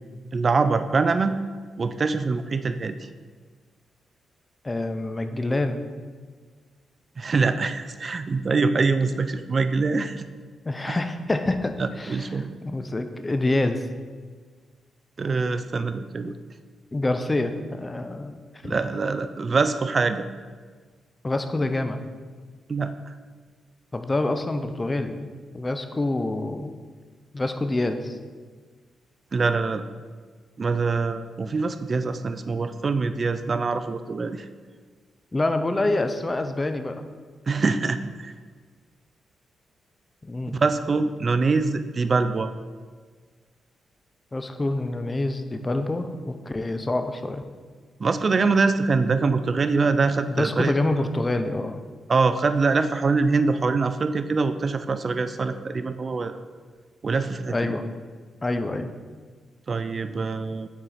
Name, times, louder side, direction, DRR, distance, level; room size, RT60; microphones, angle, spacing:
voice 1, 0.3-1.4 1.8-3.0 7.2-10.3 10.9-11.0 11.8-12.5 15.2-16.4 18.6-20.2 22.7-23.1 29.3-29.8 30.6-34.5 37.5-38.3 40.5-42.5 48.0-50.7 52.1-56.4 57.0-57.7 59.7-60.7, right 4 dB, 45° right, 11 dB, 0.3 m, -24 dB
voice 2, 4.6-5.8 10.6-13.8 16.9-18.4 18.6-18.8 21.2-22.0 23.9-25.3 25.5-26.7 27.3-28.2 35.3-37.0 40.2-40.5 44.3-47.4 50.4-51.8 57.5-57.8 58.4-58.9, left 2 dB, 25° left, 8 dB, 0.5 m, -26 dB
5.8 x 4.3 x 4.0 m, 1.5 s
cardioid pair, 70°, 0 cm